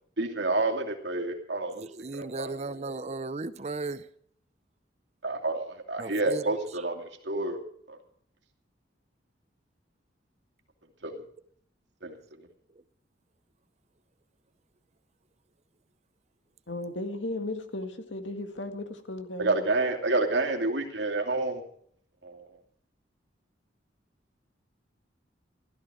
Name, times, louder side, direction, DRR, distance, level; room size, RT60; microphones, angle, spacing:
voice 1, 0.2-1.8 2.1-2.5 2.8-2.9 5.2-7.6 7.9-8.0 11.0-11.2 12.0-12.1 19.4-21.6 22.2-22.4, right 2 dB, 75° right, 2.7 m, -29 dB
voice 2, 1.7-4.1 6.0-6.4, right 3 dB, 35° right, 0.6 m, -35 dB
voice 3, 16.7-19.6, left 2 dB, 85° left, 1.9 m, -35 dB
15.5 x 13.5 x 4.9 m
head